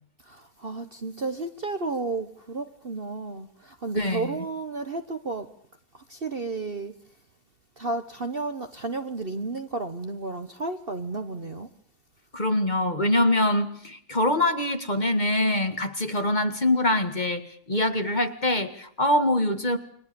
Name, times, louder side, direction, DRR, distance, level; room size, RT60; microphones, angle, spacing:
voice 1, 0.2-5.5 5.9-7.0 7.8-11.7, right 3 dB, 35° right, 1.4 m, -32 dB
voice 2, 4.0-4.3 12.3-19.8, left 1 dB, 25° left, 2.1 m, -24 dB
29.5 x 22.5 x 7.0 m
omnidirectional pair, 1.7 m